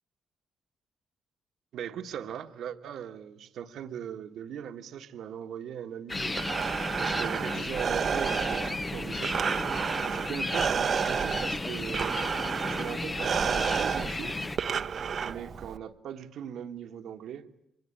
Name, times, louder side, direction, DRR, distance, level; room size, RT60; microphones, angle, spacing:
voice 1, 1.7-6.4 7.0-9.4 10.0-12.3 12.6-14.5 15.2-17.5, right 9 dB, 75° right, 1.5 m, -39 dB
sound 1, 6.1-14.6, left 2 dB, 20° left, 0.9 m, -34 dB
Breathing, 6.1-15.8, right 6 dB, 50° right, 1.0 m, -31 dB
24.5 x 20.5 x 9.9 m
cardioid pair, 90°, 0 cm